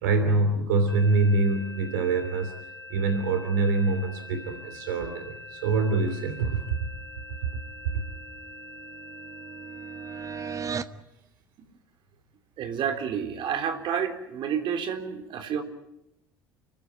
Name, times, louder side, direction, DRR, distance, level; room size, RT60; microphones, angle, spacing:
voice 1, 0.0-2.5 2.9-6.6, right 3 dB, 65° right, 7 dB, 3.0 m, -25 dB
sound 1, 0.9-10.6, left 2 dB, 85° left, 3.2 m, -44 dB
sound 2, 7.8-11.0, right 6 dB, 30° right, 1.3 m, -38 dB
voice 2, 12.6-15.6, right 7 dB, 50° right, 4 dB, 3.7 m, -29 dB
30.0 x 14.5 x 9.3 m, 0.89 s
figure-of-eight pair, 60°, 11 cm